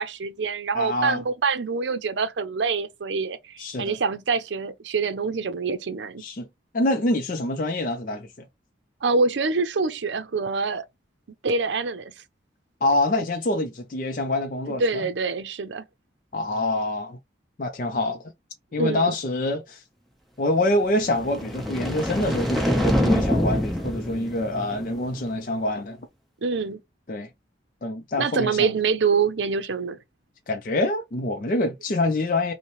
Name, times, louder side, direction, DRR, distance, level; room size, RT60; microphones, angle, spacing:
voice 1, 0.0-6.2 9.0-10.9 11.4-12.1 14.7-15.8 18.8-19.1 26.4-26.8 28.2-30.0, right 4 dB, 80° right, 0.5 m, -25 dB
voice 2, 0.7-1.2 3.6-4.0 6.2-6.5 6.7-8.3 12.8-15.1 16.3-17.2 17.6-18.2 18.7-19.8 20.4-26.0 27.1-27.3 27.8-28.7 30.5-32.5, left 2 dB, 45° left, 0.5 m, -26 dB
sound 1, 21.0-25.2, equal, ahead, 0.8 m, -25 dB
5.5 x 2.1 x 3.1 m
head